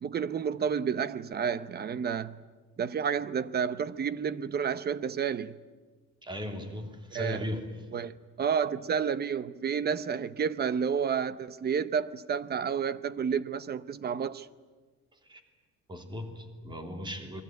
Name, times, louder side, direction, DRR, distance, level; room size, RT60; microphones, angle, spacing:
voice 1, 0.0-2.4 2.8-5.6 7.1-7.4 7.9-14.5, right 7 dB, 35° right, 0.8 m, -30 dB
voice 2, 6.2-7.8 15.1-15.4 15.9-17.4, left 1 dB, 15° right, 3.0 m, -37 dB
28.5 x 21.5 x 9.4 m
cardioid pair, 160°, 29 cm